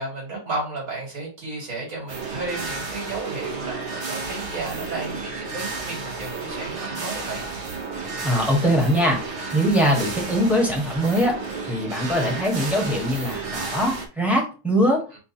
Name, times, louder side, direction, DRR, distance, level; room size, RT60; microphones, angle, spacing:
voice 1, 0.0-7.5, right 2 dB, 75° right, -4 dB, 2.8 m, -33 dB
sound 1, 2.1-14.1, right 4 dB, 55° right, 1.0 m, -32 dB
voice 2, 8.2-9.2 9.5-11.4 11.7-15.0, equal, ahead, -1 dB, 1.1 m, -22 dB
4.5 x 2.3 x 4.3 m, 0.33 s
omnidirectional pair, 1.5 m